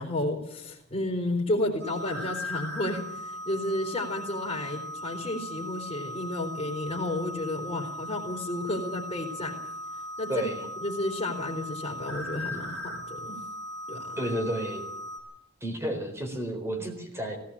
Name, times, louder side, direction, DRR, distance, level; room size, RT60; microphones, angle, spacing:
voice 1, 0.0-9.6 9.9-10.5 10.8-13.4 13.9-14.2, left 1 dB, 25° left, -1 dB, 4.0 m, -32 dB
sound 1, 1.8-15.2, equal, 55° right, 6.5 m, -38 dB
voice 2, 10.3-10.7 14.2-14.8 15.6-17.4, right 1 dB, 10° right, 5 dB, 4.2 m, -31 dB
18.0 x 16.5 x 8.8 m, 0.75 s
head